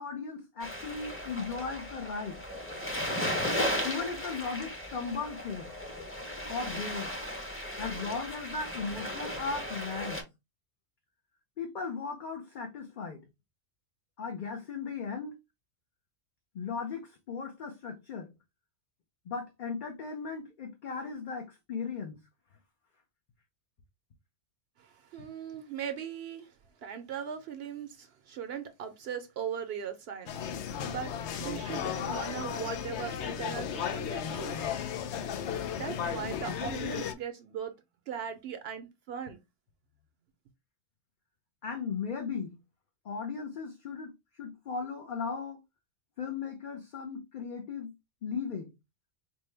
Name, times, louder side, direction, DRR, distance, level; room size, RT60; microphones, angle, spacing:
voice 1, 0.0-2.4 3.8-5.7 6.5-7.2 7.8-10.2 11.6-13.2 14.2-15.4 16.5-18.3 19.3-22.2 41.6-42.6 43.0-44.1 44.4-45.6 46.2-47.9 48.2-48.7, left 5 dB, 50° left, 0.7 m, -37 dB
sound 1, 0.6-10.2, left 1 dB, 15° left, 0.7 m, -36 dB
voice 2, 24.8-26.5 26.8-30.3 30.8-31.1 31.4-35.2 35.7-37.7 38.1-39.4, right 8 dB, 70° right, 0.8 m, -39 dB
sound 2, 30.3-37.1, left 8 dB, 85° left, 0.9 m, -35 dB
4.5 x 2.2 x 3.2 m
omnidirectional pair, 1.1 m